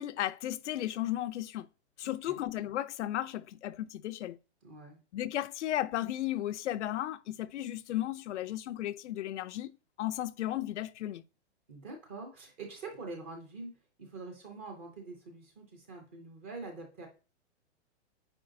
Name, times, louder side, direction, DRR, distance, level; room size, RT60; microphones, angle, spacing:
voice 1, 0.0-1.7 2.0-4.4 5.1-11.2, left 13 dB, 80° left, 0.5 m, -35 dB
voice 2, 2.0-2.4 4.6-5.0 11.7-17.1, right 3 dB, 10° right, 0.3 m, -45 dB
8.8 x 4.2 x 2.6 m
hypercardioid pair, 160°, 35 cm